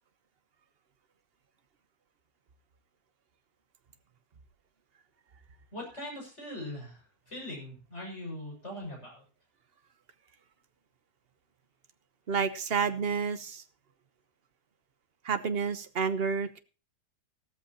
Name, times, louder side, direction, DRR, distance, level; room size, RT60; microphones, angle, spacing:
voice 1, 5.7-9.2, left 1 dB, 45° left, 0 dB, 7.1 m, -41 dB
voice 2, 12.3-13.6 15.2-16.6, right 5 dB, 45° right, 10 dB, 1.1 m, -30 dB
15.5 x 13.5 x 2.9 m, 0.34 s
omnidirectional pair, 1.6 m